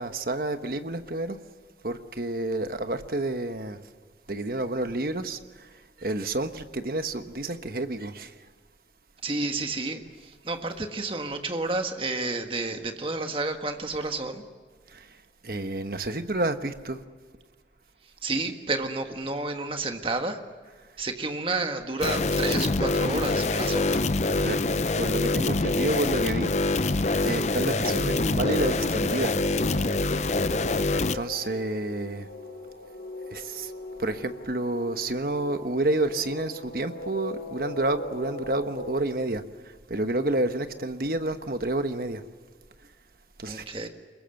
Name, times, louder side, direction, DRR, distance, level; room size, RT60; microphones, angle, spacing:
voice 1, 0.0-1.4 1.8-3.8 4.3-5.7 6.0-8.3 14.9-15.2 15.4-17.0 24.4-24.6 24.9-26.5 27.2-29.3 30.9-32.3 33.3-33.7 34.0-42.2 43.4-43.6, right 2 dB, 55° right, 1.2 m, -29 dB
voice 2, 9.2-14.4 18.2-20.4 21.0-24.1 43.4-43.9, right 3 dB, 30° right, 1.6 m, -30 dB
sound 1, 22.0-31.2, left 2 dB, 40° left, 0.6 m, -25 dB
sound 2, 28.3-38.9, left 2 dB, 80° left, 3.2 m, -40 dB
25.0 x 22.0 x 7.8 m
head